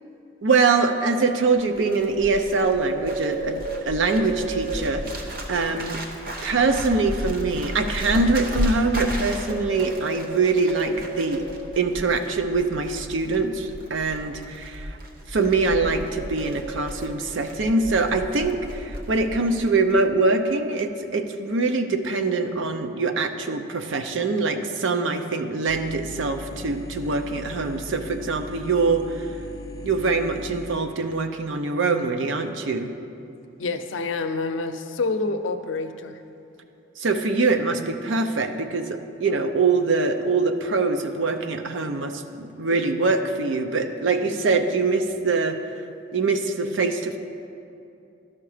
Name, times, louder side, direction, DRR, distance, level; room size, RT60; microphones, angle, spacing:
voice 1, 0.4-5.0 5.5-6.0 6.4-11.4 11.8-15.0 15.3-29.3 29.8-32.9 37.0-45.6 46.1-47.2, right 3 dB, 85° right, 7 dB, 0.6 m, -23 dB
Bird, 1.6-19.4 19.6-20.0, right 1 dB, 50° right, 0.9 m, -33 dB
sound 1, 25.7-30.8, left 2 dB, 20° left, 0.5 m, -38 dB
voice 2, 33.6-36.2, left 3 dB, 90° left, 8 dB, 0.6 m, -27 dB
12.0 x 5.9 x 4.9 m, 2.7 s
head